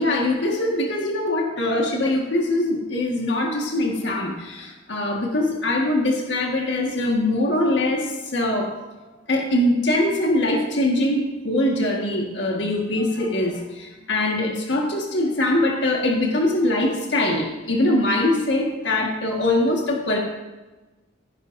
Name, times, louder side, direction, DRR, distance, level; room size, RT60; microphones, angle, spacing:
voice 1, 0.0-8.7 9.3-13.6 14.1-20.2, left 1 dB, 65° left, 0 dB, 1.6 m, -22 dB
16.5 x 11.5 x 2.6 m, 1.2 s
head